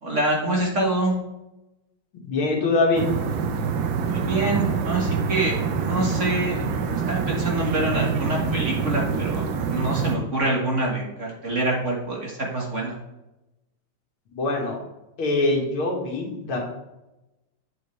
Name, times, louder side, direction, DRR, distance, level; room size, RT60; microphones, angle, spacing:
voice 1, 0.0-1.1 4.0-6.7 7.1-13.0, right 1 dB, 35° right, -2 dB, 1.8 m, -26 dB
voice 2, 2.2-3.1 14.3-14.8 15.2-16.6, left 2 dB, 75° left, -1 dB, 2.6 m, -23 dB
sound 1, 3.0-10.2, right 5 dB, 70° right, 1.5 m, -26 dB
9.1 x 7.4 x 3.3 m, 0.96 s
omnidirectional pair, 2.3 m